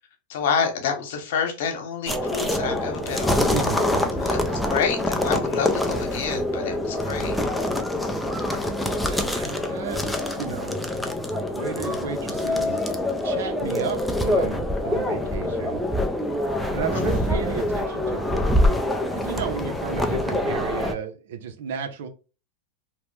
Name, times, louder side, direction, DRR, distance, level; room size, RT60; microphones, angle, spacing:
voice 1, 0.3-3.5 4.2-7.4 16.9-17.3, left 6 dB, 70° left, 5 dB, 1.0 m, -28 dB
sound 1, 2.1-20.9, left 1 dB, 5° left, 0.4 m, -25 dB
voice 2, 3.5-4.2 9.0-10.8 11.5-12.8 13.2-15.8 16.7-18.4 19.1-22.1, right 7 dB, 75° right, 9 dB, 0.6 m, -33 dB
2.9 x 2.1 x 3.1 m, 0.34 s
supercardioid pair, 135°, 0 cm